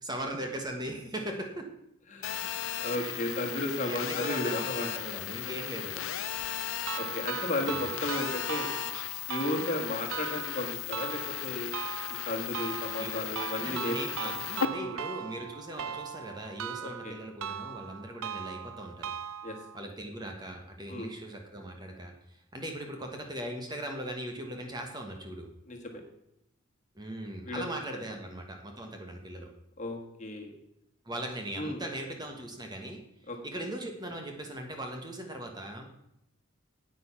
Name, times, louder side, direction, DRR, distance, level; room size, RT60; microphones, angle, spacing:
voice 1, 0.0-1.7 3.0-3.5 3.8-5.9 7.6-7.9 13.0-13.1 13.4-19.1 19.7-25.5 26.9-29.5 31.0-35.9, right 1 dB, 20° right, 3 dB, 1.2 m, -39 dB
voice 2, 2.1-2.5 2.8-4.9 7.0-8.7 9.3-11.7 12.3-13.9 14.2-14.3 14.8-14.9 16.8-17.1 19.4-19.6 20.9-21.1 25.7-26.0 27.4-27.6 29.8-30.5 31.6-31.8 33.3-33.4, left 1 dB, 35° left, 2 dB, 1.6 m, -34 dB
Telephone, 2.2-14.7, left 10 dB, 80° left, 0.6 m, -36 dB
sound 1, 6.9-19.8, right 8 dB, 80° right, 0.5 m, -39 dB
9.0 x 8.8 x 5.8 m, 0.82 s
head